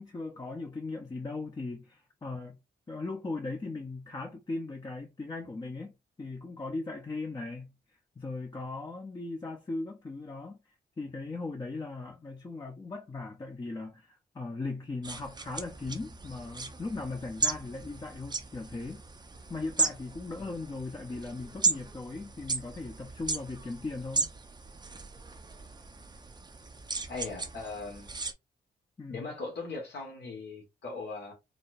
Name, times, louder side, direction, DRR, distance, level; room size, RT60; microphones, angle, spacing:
voice 1, 0.0-2.6 2.9-7.7 8.2-10.6 11.0-19.0 19.5-24.3 29.0-29.3, left 3 dB, 20° left, 0.6 m, -38 dB
sound 1, 15.0-28.3, right 3 dB, 25° right, 0.5 m, -36 dB
voice 2, 27.1-28.1 29.1-31.3, left 3 dB, 80° left, 1.4 m, -39 dB
4.1 x 2.1 x 2.6 m
cardioid pair, 105°, 17 cm